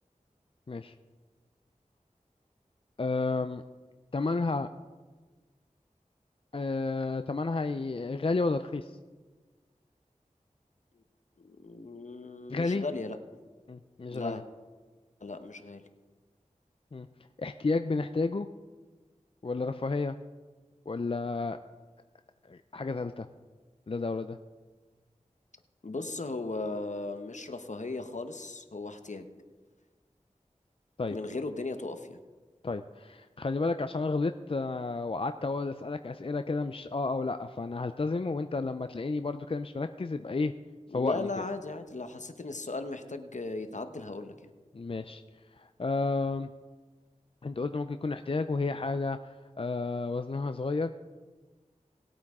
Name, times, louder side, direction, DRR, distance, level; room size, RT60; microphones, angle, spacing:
voice 1, 3.0-3.6 4.1-4.7 6.5-8.9 12.5-12.8 13.7-14.4 16.9-17.1 17.4-18.5 19.4-20.2 20.9-21.6 22.5-23.3 23.9-24.4 31.0-31.2 32.6-40.5 40.9-41.3 44.7-45.2 45.5-46.5 47.4-50.9, left 3 dB, 45° left, 9 dB, 0.4 m, -31 dB
voice 2, 11.4-13.2 14.1-14.4 15.2-15.8 25.8-29.3 31.1-32.2 40.9-44.3, left 3 dB, 65° left, 8 dB, 1.0 m, -37 dB
19.0 x 8.8 x 3.6 m, 1.4 s
wide cardioid pair, 45°, 13 cm